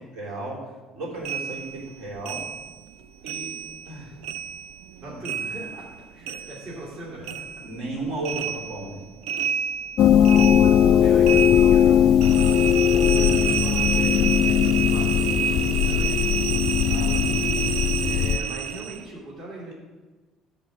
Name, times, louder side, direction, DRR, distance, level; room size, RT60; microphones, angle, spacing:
voice 1, 0.1-0.6 0.9-1.6 2.0-2.5 3.2-3.6 3.9-4.1 5.0-5.2 7.6-9.0 16.8-17.2, right 2 dB, 70° right, -4 dB, 3.7 m, -34 dB
sound 1, 1.2-4.0 4.2-7.0 7.2-19.0, right 8 dB, 90° right, 0.5 m, -30 dB
voice 2, 5.0-7.6 9.4-9.5 10.1-19.7, right 2 dB, 45° right, -6 dB, 2.8 m, -40 dB
sound 2, 10.0-18.4, left 9 dB, 50° left, 0.3 m, -19 dB
11.5 x 4.3 x 7.9 m, 1.2 s
cardioid pair, 155°, 0 cm